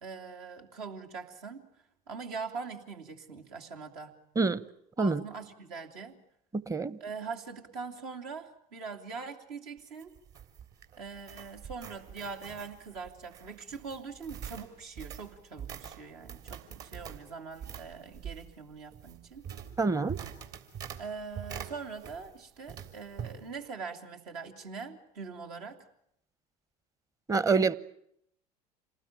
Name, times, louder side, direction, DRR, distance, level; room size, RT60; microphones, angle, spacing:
voice 1, 0.0-1.6 2.1-4.1 5.0-6.2 7.0-10.1 11.0-19.4 21.0-25.8, right 5 dB, 70° right, 3 dB, 2.9 m, -42 dB
voice 2, 6.7-7.0 19.8-20.2 27.3-27.7, right 4 dB, 15° right, 19 dB, 1.0 m, -26 dB
sound 1, 9.8-22.4 22.7-23.4, right 8 dB, 50° right, 3.5 m, -44 dB
27.5 x 19.5 x 9.1 m, 0.73 s
figure-of-eight pair, 70°, 21 cm